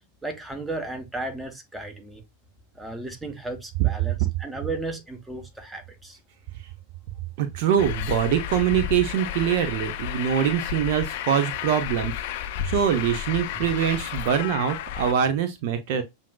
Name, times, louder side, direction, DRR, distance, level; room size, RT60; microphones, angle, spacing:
voice 1, 0.2-2.2 2.7-6.2 12.6-12.7, right 2 dB, 5° right, 1.1 m, -34 dB
voice 2, 7.4-12.1 12.6-16.0, right 9 dB, 50° right, 0.7 m, -23 dB
Truck, 7.8-15.1, left 11 dB, 50° left, 0.5 m, -32 dB
7.3 x 2.6 x 2.3 m
figure-of-eight pair, 90°, 0 cm